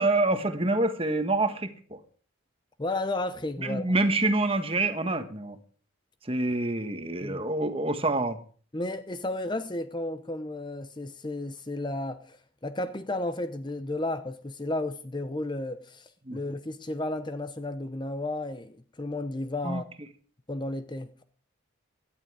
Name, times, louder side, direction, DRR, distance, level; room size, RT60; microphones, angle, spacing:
voice 1, 0.0-2.0 3.6-5.6 6.3-8.4 16.3-16.4 19.6-19.8, right 2 dB, 25° right, 1.4 m, -26 dB
voice 2, 2.8-3.8 7.2-7.4 8.7-12.4 12.6-19.8 20.5-21.2, left 2 dB, 20° left, 0.7 m, -33 dB
16.5 x 12.0 x 4.9 m
head